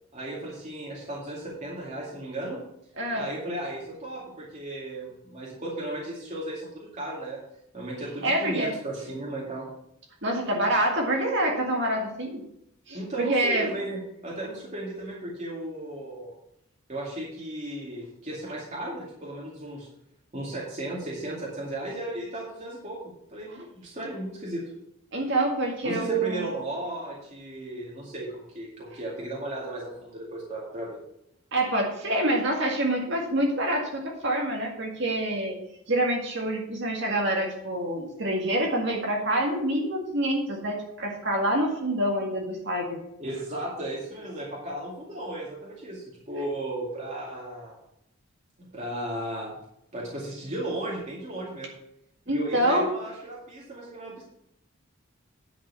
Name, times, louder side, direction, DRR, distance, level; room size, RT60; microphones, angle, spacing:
voice 1, 0.1-2.6 3.1-7.4 7.7-9.7 12.9-16.3 16.9-19.9 20.3-23.0 23.3-24.7 25.8-31.0 43.2-47.8 48.6-49.6 49.9-51.7 52.3-54.2, right 1 dB, 35° right, -5 dB, 2.3 m, -35 dB
voice 2, 3.0-3.3 8.2-8.7 10.2-12.4 12.9-13.7 25.1-26.6 31.5-35.6 35.9-43.0 52.3-52.9, right 1 dB, 60° right, 0 dB, 2.0 m, -26 dB
9.9 x 6.1 x 6.9 m, 0.79 s
head